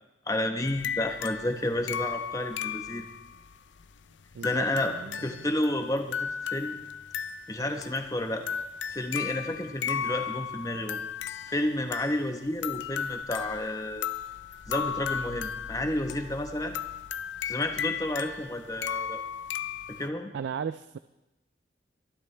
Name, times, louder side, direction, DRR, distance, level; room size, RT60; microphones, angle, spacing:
voice 1, 0.3-3.1 4.4-5.0 5.2-6.8 7.5-8.5 8.9-11.0 11.5-14.1 14.7-16.8 17.5-19.2 19.9-20.3, left 1 dB, 20° left, 5 dB, 1.0 m, -31 dB
sound 1, 0.6-20.1, left 7 dB, 85° left, 0.6 m, -35 dB
voice 2, 4.3-5.4 20.3-21.0, right 7 dB, 75° right, 13 dB, 0.3 m, -36 dB
23.0 x 12.0 x 3.3 m, 1.0 s
head